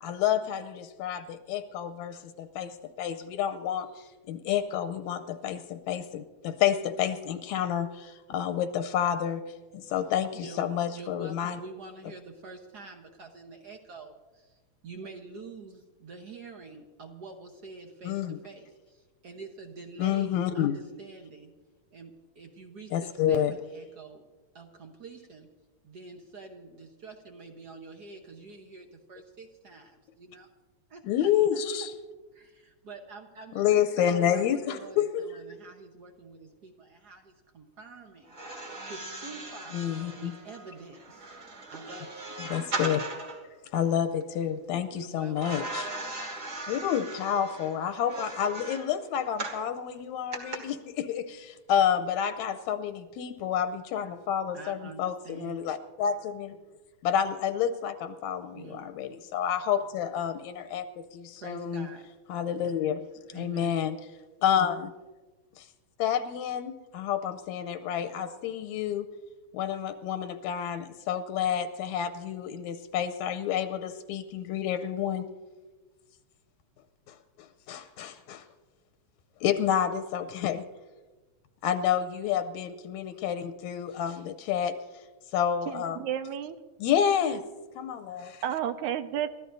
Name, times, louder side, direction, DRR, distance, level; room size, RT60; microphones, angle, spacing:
voice 1, 0.0-9.4 9.7-11.6 18.0-18.4 20.0-20.8 22.9-23.5 31.0-31.9 33.6-35.2 39.7-40.3 42.4-43.0 43.7-45.9 46.7-56.6 57.0-61.9 62.3-64.0 64.4-64.9 65.6-65.7 66.0-69.1 69.5-75.3 77.1-78.4 79.4-80.6 81.6-84.8 85.3-86.0 86.8-87.4 87.8-88.4, left 9 dB, 85° left, 10 dB, 2.0 m, -29 dB
voice 2, 10.3-21.5 21.9-24.2 24.5-25.5 25.8-30.5 30.9-31.3 32.3-38.3 38.9-41.3 41.7-42.2 44.9-45.6 54.5-55.7 58.5-58.8 59.1-59.2 61.4-62.1 63.3-63.8, right 3 dB, 65° right, 3 dB, 1.0 m, -47 dB
sound 1, 38.3-43.4 45.4-49.7 50.3-50.6, right 2 dB, 35° right, 2.3 m, -38 dB
voice 3, 85.7-86.6 88.4-89.3, right 10 dB, 85° right, 10 dB, 2.2 m, -31 dB
29.5 x 14.0 x 2.6 m, 1.3 s
omnidirectional pair, 3.3 m